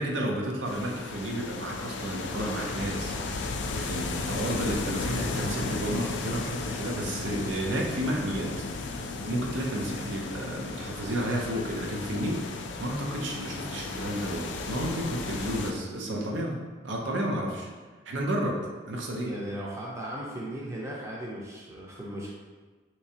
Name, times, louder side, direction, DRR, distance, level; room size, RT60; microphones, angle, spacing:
voice 1, 0.0-3.2 3.7-8.5 8.8-16.6 16.8-17.7 18.1-19.3, right 1 dB, 85° right, -1 dB, 0.6 m, -32 dB
sound 1, 0.7-15.7, left 3 dB, 75° left, 0.3 m, -35 dB
voice 2, 15.9-16.5 19.2-22.3, right 1 dB, 15° right, -4 dB, 0.5 m, -37 dB
3.3 x 3.0 x 2.7 m, 1.4 s
head